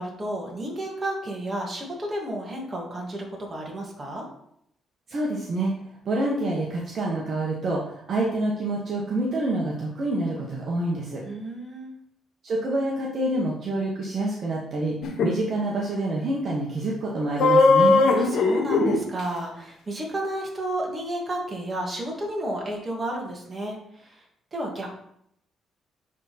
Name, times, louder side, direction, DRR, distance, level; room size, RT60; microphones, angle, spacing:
voice 1, 0.0-4.3 11.2-11.9 18.2-24.2 24.5-24.9, right 1 dB, 25° right, -1 dB, 2.4 m, -32 dB
voice 2, 5.1-5.7 6.0-11.2 12.4-18.0, right 2 dB, 55° right, -3 dB, 1.4 m, -27 dB
sound 1, 15.0-15.3 17.4-19.0, left 3 dB, 70° left, 1.1 m, -18 dB
9.8 x 3.9 x 4.3 m, 0.73 s
cardioid pair, 90°, 0 cm